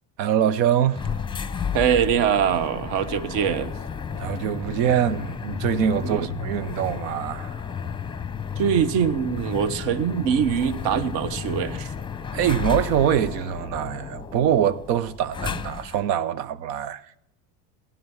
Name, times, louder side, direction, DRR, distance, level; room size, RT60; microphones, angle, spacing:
voice 1, 0.2-1.1 4.1-7.6 12.3-17.1, right 9 dB, 80° right, 1.0 m, -24 dB
sound 1, 0.9-16.1, left 7 dB, 10° left, 0.7 m, -33 dB
voice 2, 1.7-3.7 6.1-6.3 8.6-11.9, right 8 dB, 65° right, 1.4 m, -23 dB
16.5 x 11.0 x 7.2 m
supercardioid pair, 110°, 48 cm